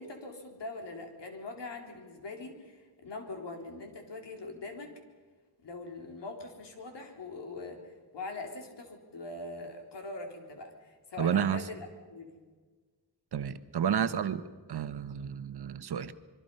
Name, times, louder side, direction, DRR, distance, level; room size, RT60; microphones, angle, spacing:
voice 1, 0.0-5.0 5.6-11.8 12.1-12.4, left 3 dB, 75° left, 3 dB, 3.9 m, -42 dB
voice 2, 11.2-11.6 13.3-14.4 14.7-16.1, right 8 dB, 65° right, 12 dB, 1.2 m, -30 dB
26.0 x 23.5 x 5.6 m, 1.4 s
wide cardioid pair, 135°, 42 cm